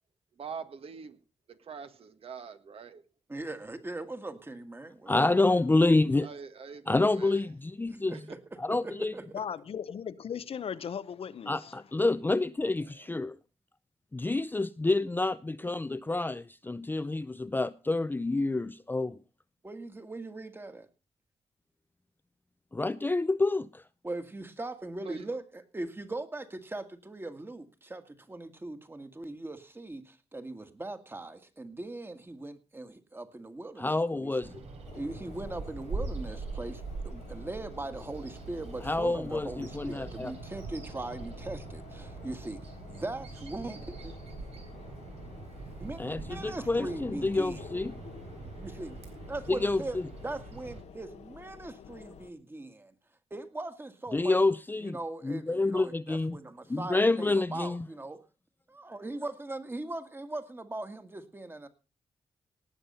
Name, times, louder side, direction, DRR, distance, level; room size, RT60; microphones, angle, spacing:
voice 1, 0.4-1.2 1.5-3.0 6.2-7.3 8.3-8.4 12.9-13.1 25.0-25.3, right 6 dB, 60° right, 1.5 m, -44 dB
voice 2, 3.3-5.5 7.9-9.4 19.6-20.9 24.0-34.3 34.9-42.6 42.9-44.1 45.8-46.0 46.3-47.6 48.6-49.0 49.3-52.9 53.3-54.4 54.8-58.2 58.7-61.7, right 2 dB, 20° right, 1.8 m, -40 dB
voice 3, 5.1-6.3 6.9-8.1 8.6-9.1 11.5-13.4 14.1-19.2 22.7-23.8 33.8-34.6 38.8-40.3 46.0-47.9 49.5-49.8 54.1-55.0 55.2-56.4 56.7-57.9, left 2 dB, 20° left, 0.5 m, -28 dB
voice 4, 9.3-11.8, left 7 dB, 60° left, 0.8 m, -37 dB
Bird vocalization bird call bird song, 34.4-50.8, right 4 dB, 80° right, 4.0 m, -43 dB
sound 1, 34.8-52.3, left 7 dB, 85° left, 1.2 m, -50 dB
18.0 x 7.4 x 5.5 m
cardioid pair, 90°, 11 cm